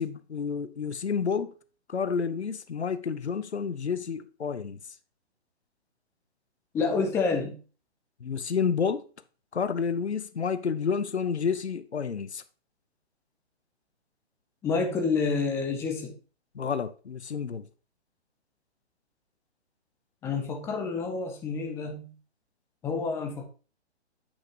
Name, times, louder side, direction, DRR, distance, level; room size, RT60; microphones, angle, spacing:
voice 1, 0.0-1.5 1.9-4.8 8.2-9.1 9.5-12.4 16.5-17.7, left 6 dB, 75° left, 0.7 m, -30 dB
voice 2, 6.7-7.6 14.6-16.1 20.2-22.1 22.8-23.5, left 4 dB, 10° left, 0.6 m, -28 dB
8.0 x 6.4 x 2.8 m
figure-of-eight pair, 125°, 33 cm